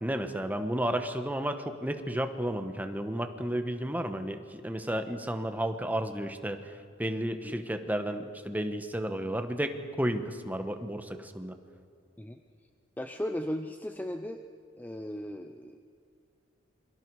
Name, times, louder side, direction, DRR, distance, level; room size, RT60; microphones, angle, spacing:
voice 1, 0.0-6.7 7.0-11.5, right 1 dB, 10° right, 7 dB, 1.2 m, -32 dB
voice 2, 13.0-14.4 14.8-15.8, equal, 10° left, 6 dB, 0.6 m, -36 dB
28.0 x 23.5 x 4.8 m, 2.4 s
head